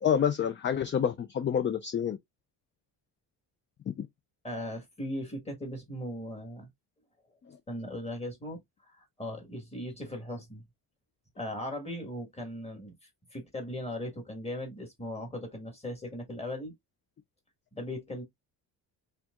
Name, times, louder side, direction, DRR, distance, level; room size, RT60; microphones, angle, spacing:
voice 1, 0.0-2.2 4.0-4.1, left 8 dB, 30° left, 0.3 m, -28 dB
voice 2, 4.4-6.7 7.7-8.6 8.9-10.6 11.4-16.7 17.7-18.2, left 1 dB, 15° left, 1.5 m, -38 dB
4.4 x 3.6 x 2.4 m
cardioid pair, 140°, 40 cm